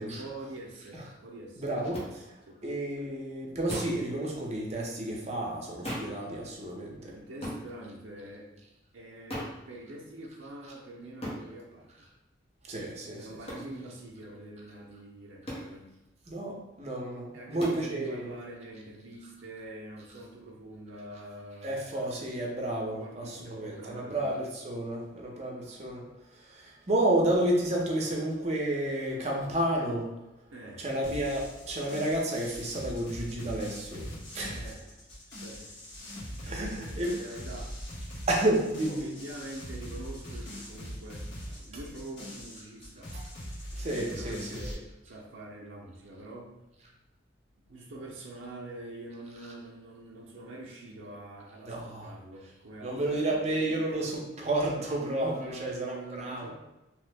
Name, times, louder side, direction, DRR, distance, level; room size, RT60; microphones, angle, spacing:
voice 1, 0.0-1.9 2.5-2.6 7.0-8.5 8.9-11.9 13.2-15.9 17.3-21.8 22.9-24.3 30.5-30.9 34.5-34.9 35.3-35.8 36.4-37.8 38.9-43.1 43.9-46.6 47.6-53.3 54.8-56.5, right 2 dB, 80° right, -3 dB, 0.5 m, -45 dB
voice 2, 1.6-2.3 2.6-7.1 12.7-13.3 16.3-18.3 21.6-26.0 26.3-30.1 30.8-34.1 34.3-34.6 36.4-37.2 38.3-39.1 43.1-43.2 43.7-44.6 51.7-52.1 52.8-56.5, right 1 dB, 35° right, -2 dB, 0.6 m, -31 dB
sound 1, 1.9-2.1 3.7-4.0 5.8-6.2 7.4-7.6 9.3-9.6 11.2-11.4 13.5-13.7 15.5-15.7 17.6-17.9, equal, 30° left, 0.7 m, -36 dB
sound 2, 31.0-44.7, equal, 75° left, 1.1 m, -41 dB
3.0 x 2.0 x 3.3 m, 0.97 s
head